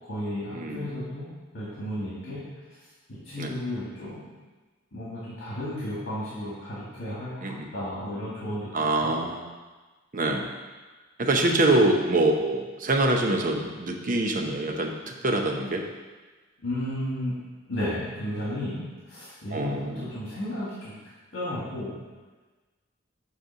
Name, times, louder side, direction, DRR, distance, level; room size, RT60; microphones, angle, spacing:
voice 1, 0.0-1.3 1.5-2.4 3.1-4.2 4.9-8.7 9.0-9.1 11.5-11.7 16.6-17.3 17.7-20.9 21.3-21.9, left 1 dB, 65° left, -9 dB, 2.0 m, -33 dB
voice 2, 0.5-0.9 3.4-3.5 7.4-7.7 8.7-9.5 10.1-10.5 11.2-15.9 19.5-20.1, right 2 dB, 40° right, 2 dB, 0.8 m, -25 dB
7.9 x 3.4 x 6.1 m, 1.3 s
head